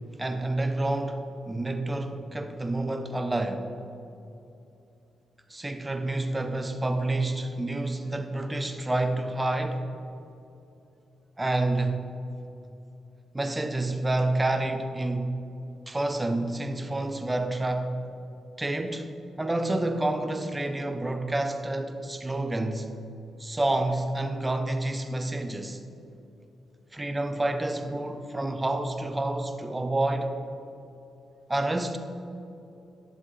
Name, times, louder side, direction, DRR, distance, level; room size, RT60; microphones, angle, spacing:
voice 1, 0.2-3.7 5.5-9.8 11.4-12.1 13.3-15.4 15.9-17.9 18.6-19.1 19.4-22.9 23.4-25.8 26.9-30.4 31.5-32.0, right 2 dB, 20° right, 0.8 m, -28 dB
11.0 x 7.3 x 3.3 m
supercardioid pair, 55°, 0 cm